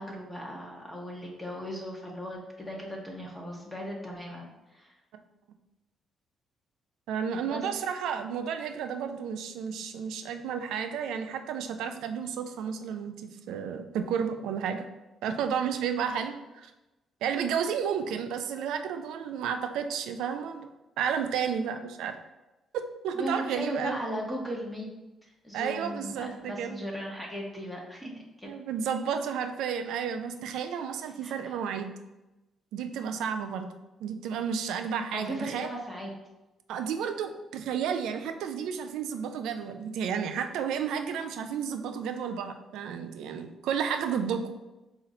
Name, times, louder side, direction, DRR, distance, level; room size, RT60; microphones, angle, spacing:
voice 1, 0.0-4.9 7.5-7.6 16.1-16.2 23.1-24.9 25.2-28.1 28.4-28.5 31.2-31.6 35.1-36.1, equal, 10° left, -2 dB, 0.9 m, -37 dB
voice 2, 7.1-14.9 15.2-16.7 17.2-20.7 21.0-22.2 22.7-24.0 25.5-26.8 28.4-31.9 32.7-33.7 34.0-35.7 36.7-44.4, right 7 dB, 85° right, 7 dB, 0.3 m, -32 dB
3.8 x 2.4 x 4.1 m, 1.0 s
cardioid pair, 90°, 0 cm